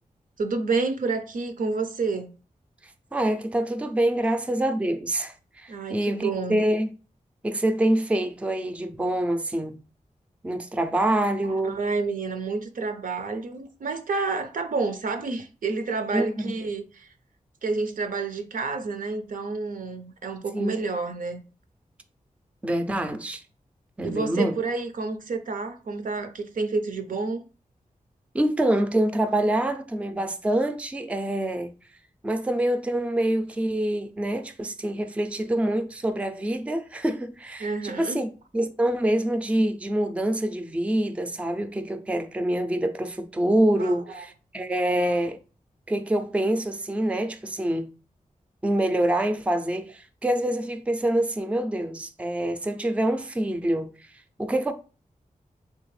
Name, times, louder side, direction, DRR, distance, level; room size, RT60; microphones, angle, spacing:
voice 1, 0.4-2.3 5.7-6.6 11.6-17.1 17.6-21.4 24.0-27.4 37.6-38.2 43.8-44.2, right 4 dB, 80° right, 0.5 m, -29 dB
voice 2, 3.1-6.9 7.4-9.8 10.4-11.8 16.1-16.5 20.5-20.7 22.6-23.4 24.0-24.5 28.3-31.7 32.2-45.4 45.9-47.9 48.6-53.9 54.4-54.7, right 1 dB, 10° right, 0.4 m, -26 dB
3.4 x 3.3 x 3.1 m
wide cardioid pair, 125°, 14 cm